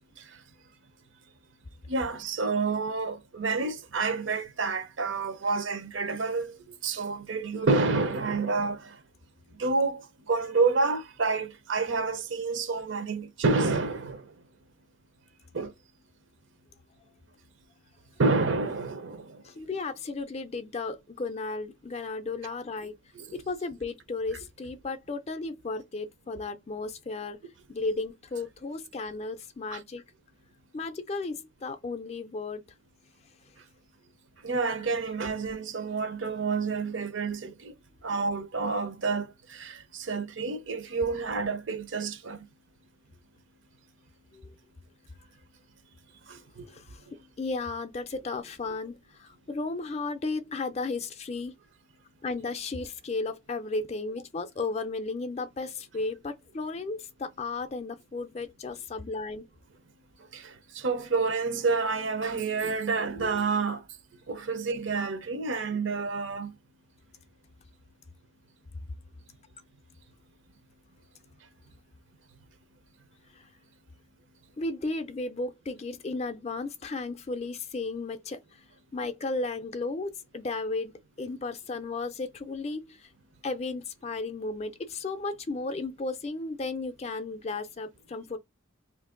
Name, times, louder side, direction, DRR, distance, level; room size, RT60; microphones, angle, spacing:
voice 1, 1.9-6.5 6.8-8.8 9.6-10.0 10.3-14.2 15.5-15.7 18.2-19.3 23.2-23.3 29.7-29.8 34.4-37.7 38.0-42.4 46.3-46.6 60.3-60.4 60.8-63.8 64.3-66.5, right 4 dB, 70° right, 0.6 m, -29 dB
voice 2, 19.4-22.9 23.3-27.4 27.7-30.0 30.7-32.6 38.1-38.2 44.3-44.5 46.7-47.0 47.4-51.5 52.2-59.5 74.6-78.4 78.9-83.0 83.4-88.4, left 3 dB, 30° left, 0.4 m, -34 dB
2.7 x 2.5 x 3.7 m
head